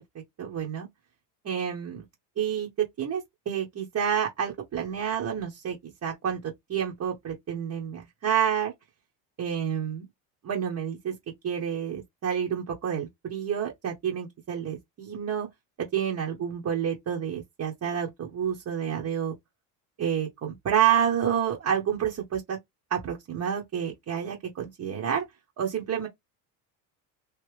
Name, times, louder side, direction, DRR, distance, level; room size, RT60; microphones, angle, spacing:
voice 1, 0.1-0.9 1.4-2.0 2.4-2.7 3.0-8.7 9.4-10.0 10.4-11.1 11.4-15.5 15.8-19.3 20.0-22.6 22.9-25.2 25.6-26.1, right 8 dB, 35° right, 1.2 m, -29 dB
3.2 x 2.8 x 3.3 m
supercardioid pair, 100°, 48 cm